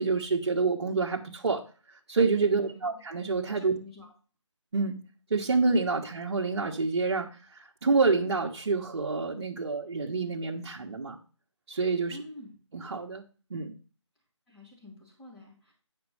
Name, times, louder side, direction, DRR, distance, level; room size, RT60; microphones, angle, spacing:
voice 1, 0.0-1.6 2.1-3.8 4.7-5.0 5.3-7.3 7.8-11.2 11.7-12.2 12.7-13.2 13.5-13.7, right 4 dB, 55° right, -1 dB, 1.2 m, -27 dB
voice 2, 2.5-2.9 3.5-4.1 12.1-12.5 14.5-15.7, left 2 dB, 10° left, -6 dB, 3.0 m, -47 dB
9.5 x 5.3 x 4.8 m, 0.36 s
hypercardioid pair, 170°, 16 cm